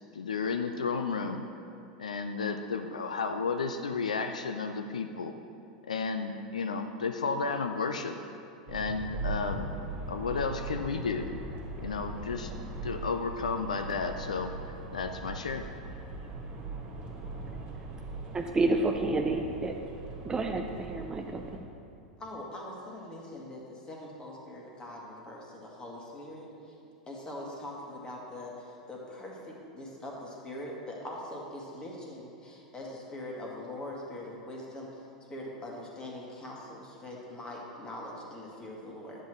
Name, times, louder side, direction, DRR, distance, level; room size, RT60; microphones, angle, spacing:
voice 1, 0.1-1.4 2.0-5.3 5.9-8.2 8.7-9.7 10.1-11.3 11.8-12.5 12.8-14.5 14.9-15.7, left 4 dB, 80° left, 6 dB, 0.4 m, -32 dB
sound 1, 8.7-21.6, right 2 dB, 40° right, 1.8 m, -40 dB
voice 2, 18.3-19.8 20.2-21.7, right 2 dB, 20° right, 4 dB, 0.5 m, -29 dB
voice 3, 22.2-26.8 27.1-35.0 35.3-39.2, left 1 dB, 20° left, -2 dB, 1.9 m, -42 dB
10.0 x 8.0 x 3.1 m, 2.5 s
figure-of-eight pair, 90°, 4 cm